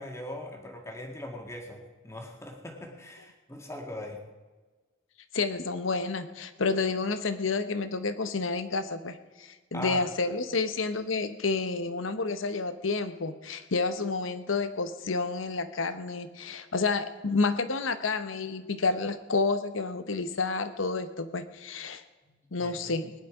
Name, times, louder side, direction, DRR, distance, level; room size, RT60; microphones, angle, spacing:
voice 1, 0.0-4.2 9.7-10.0 22.2-23.0, left 1 dB, 15° left, 2 dB, 1.8 m, -40 dB
voice 2, 5.3-22.0 22.5-23.1, left 4 dB, 85° left, 11 dB, 0.9 m, -30 dB
20.0 x 10.5 x 5.0 m, 1.3 s
head